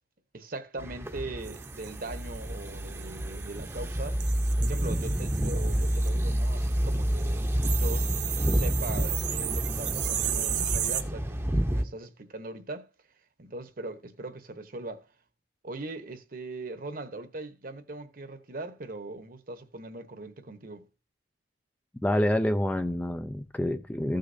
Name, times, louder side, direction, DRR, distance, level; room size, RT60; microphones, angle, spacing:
voice 1, 0.3-4.2 4.6-8.1 8.4-12.9 13.4-15.1 15.6-20.9, right 2 dB, 50° right, 1.0 m, -40 dB
sound 1, 0.8-11.8, equal, 15° right, 0.8 m, -29 dB
sound 2, 1.4-11.0, right 11 dB, 75° right, 0.9 m, -36 dB
voice 2, 22.0-24.2, left 1 dB, 10° left, 0.4 m, -27 dB
15.0 x 6.5 x 2.7 m
head